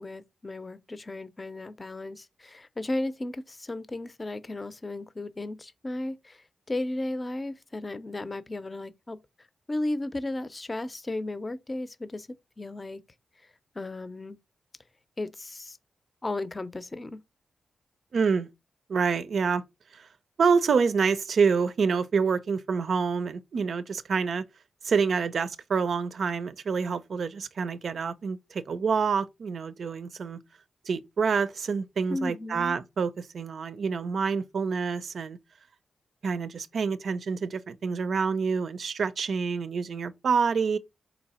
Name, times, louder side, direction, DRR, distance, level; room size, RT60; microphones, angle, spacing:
voice 1, 0.0-9.2 9.7-13.0 13.7-14.4 15.2-15.8 16.2-17.2 32.1-32.8, left 2 dB, 30° left, 0.5 m, -35 dB
voice 2, 18.1-18.5 18.9-19.6 19.9-20.1 20.4-24.4 24.8-30.4 30.9-35.4 36.2-40.8, right 5 dB, 70° right, 0.4 m, -27 dB
4.1 x 2.8 x 4.1 m
cardioid pair, 70°, 0 cm